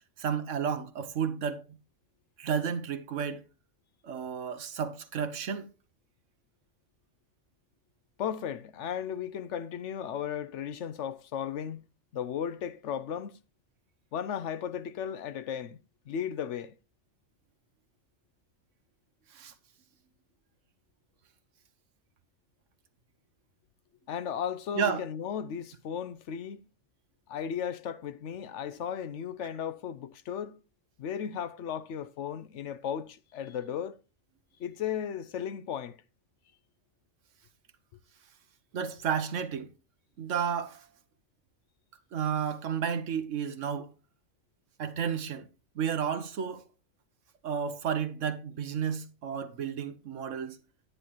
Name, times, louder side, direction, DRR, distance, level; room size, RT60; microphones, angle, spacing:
voice 1, 0.2-1.6 2.4-3.4 4.0-5.7 19.3-19.5 24.7-25.0 38.7-39.7 40.2-40.8 42.1-43.9 44.8-45.5 45.8-46.6 47.4-50.6, right 7 dB, 65° right, 1.2 m, -32 dB
voice 2, 8.2-11.9 12.1-13.4 14.1-15.8 16.1-16.7 24.1-26.7 27.3-30.6 31.0-34.0 34.6-36.0, left 8 dB, 65° left, 0.9 m, -35 dB
10.0 x 9.8 x 2.9 m
omnidirectional pair, 1.4 m